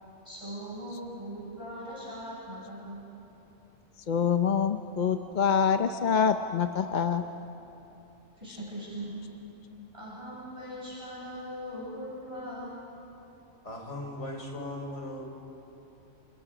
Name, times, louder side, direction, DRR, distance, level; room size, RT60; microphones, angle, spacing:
voice 1, 0.2-3.0 8.4-9.1 9.9-12.7, equal, 25° right, -7 dB, 6.4 m, -40 dB
voice 2, 4.1-7.2, left 7 dB, 50° left, 8 dB, 0.7 m, -25 dB
voice 3, 13.6-15.2, left 1 dB, 70° left, 1 dB, 4.1 m, -38 dB
29.0 x 28.0 x 5.0 m, 2.9 s
omnidirectional pair, 1.3 m